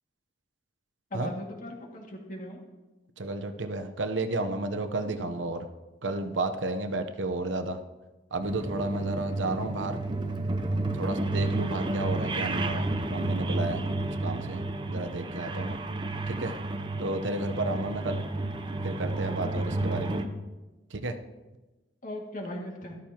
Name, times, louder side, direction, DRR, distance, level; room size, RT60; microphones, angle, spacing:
voice 1, 1.1-2.6 22.0-23.0, left 1 dB, 45° left, 0 dB, 2.1 m, -38 dB
voice 2, 3.2-5.7 6.0-7.8 8.3-10.0 10.9-15.8 16.3-16.5 17.0-18.2 18.8-20.2 20.9-21.1, right 2 dB, 85° right, 8 dB, 0.9 m, -32 dB
sound 1, 8.4-20.2, right 2 dB, 25° right, 0.7 m, -31 dB
13.5 x 13.0 x 2.9 m, 1.1 s
head